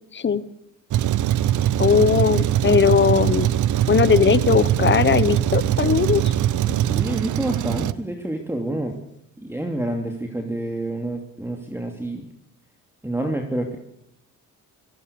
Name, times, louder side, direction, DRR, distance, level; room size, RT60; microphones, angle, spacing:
Truck, 0.9-7.9, right 12 dB, 70° right, 0.9 m, -21 dB
voice 1, 1.8-3.5 3.9-6.3, left 6 dB, 35° left, 16 dB, 1.3 m, -19 dB
voice 2, 6.7-9.0 9.4-12.2 13.0-13.8, right 1 dB, 5° right, 3 dB, 2.9 m, -28 dB
24.5 x 16.5 x 7.0 m, 0.78 s
cardioid pair, 90°, 31 cm